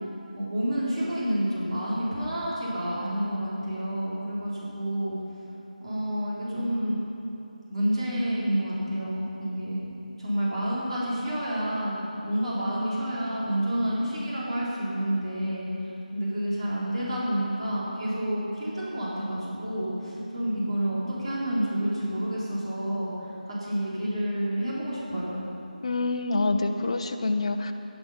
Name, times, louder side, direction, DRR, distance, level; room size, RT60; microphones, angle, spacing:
voice 1, 0.3-5.2 5.8-7.0 7.7-9.8 10.2-15.7 16.1-23.1 23.5-25.4, equal, 45° right, -7 dB, 3.5 m, -29 dB
voice 2, 25.8-27.7, left 3 dB, 40° left, 5 dB, 0.6 m, -26 dB
13.5 x 10.5 x 5.6 m, 2.9 s
figure-of-eight pair, 170°, 5 cm